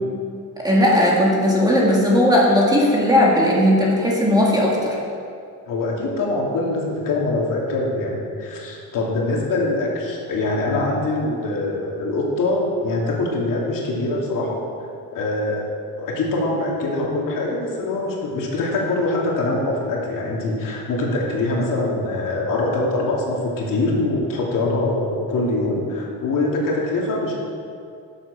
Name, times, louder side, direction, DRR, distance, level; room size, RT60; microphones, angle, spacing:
voice 1, 0.6-5.0, left 1 dB, 10° right, -4 dB, 1.9 m, -17 dB
voice 2, 5.7-14.6 15.1-15.7 16.0-27.3, left 2 dB, 60° left, -3 dB, 2.5 m, -23 dB
11.5 x 7.8 x 5.9 m, 2.4 s
cardioid pair, 160°, 37 cm